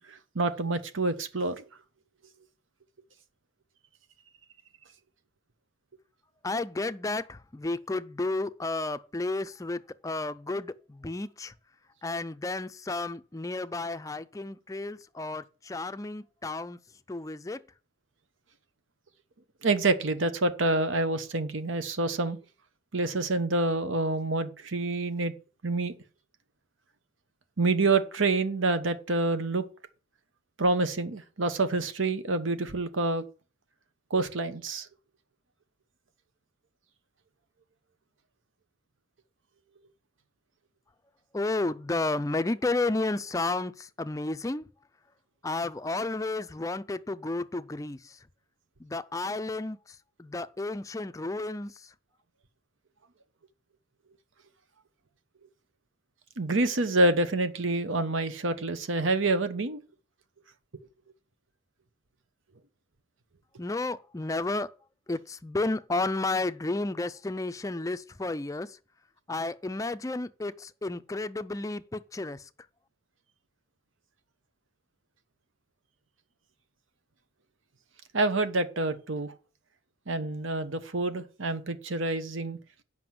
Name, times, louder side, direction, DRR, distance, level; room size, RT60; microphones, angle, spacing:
voice 1, 0.1-1.6 19.6-22.4 22.9-25.3 25.6-25.9 27.6-29.6 30.6-33.2 34.1-34.9 56.4-59.8 78.1-79.3 80.1-82.6, right 2 dB, 75° right, 1.1 m, -27 dB
voice 2, 6.4-11.5 12.0-16.8 17.1-17.6 41.3-44.6 45.4-48.1 48.8-49.8 50.2-51.7 63.6-64.7 65.1-68.7 69.3-72.4, left 2 dB, 15° left, 0.4 m, -32 dB
7.7 x 5.9 x 7.6 m
head